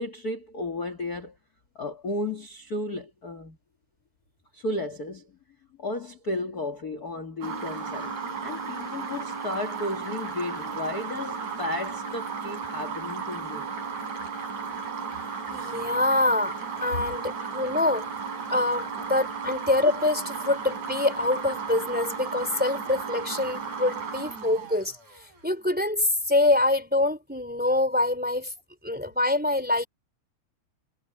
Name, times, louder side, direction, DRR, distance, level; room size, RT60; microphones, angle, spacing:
voice 1, 0.0-1.3 1.8-3.6 4.5-5.3 5.8-13.7 19.0-19.1, left 2 dB, 35° left, 2.1 m, -33 dB
sound 1, 7.4-25.4, right 6 dB, 85° right, 7.9 m, -34 dB
voice 2, 15.5-18.1 18.5-25.0 25.4-28.5 28.8-29.8, left 2 dB, 5° right, 2.9 m, -25 dB
omnidirectional pair, 3.3 m